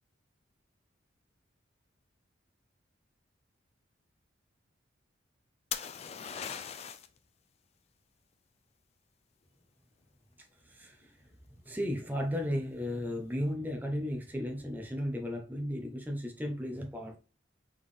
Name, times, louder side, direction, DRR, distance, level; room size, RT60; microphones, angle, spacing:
sound 1, 5.7-7.2 10.8-11.3, left 8 dB, 35° left, 0.3 m, -39 dB
voice 1, 10.4-17.2, equal, 10° right, 2 dB, 0.6 m, -35 dB
4.0 x 3.5 x 3.2 m, 0.36 s
head